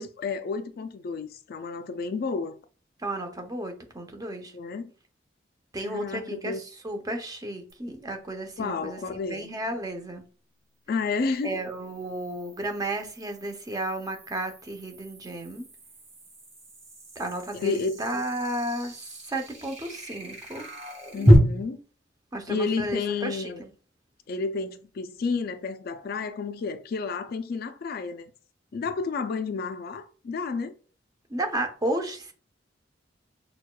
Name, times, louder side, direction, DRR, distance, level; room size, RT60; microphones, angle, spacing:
voice 1, 0.0-2.6 4.5-4.9 5.8-6.6 8.6-9.5 10.9-11.6 17.5-18.0 21.1-21.8 22.5-23.6 24.3-28.3 28.7-30.8, left 4 dB, 55° left, 0.4 m, -31 dB
voice 2, 3.0-4.5 5.7-9.0 9.3-10.2 11.4-15.6 17.2-19.0 19.3-20.6 22.3-23.7 31.3-32.3, right 1 dB, 20° right, 0.6 m, -33 dB
sound 1, 7.7-7.8 11.2-21.3, equal, 35° right, 1.6 m, -29 dB
6.2 x 2.3 x 2.2 m
head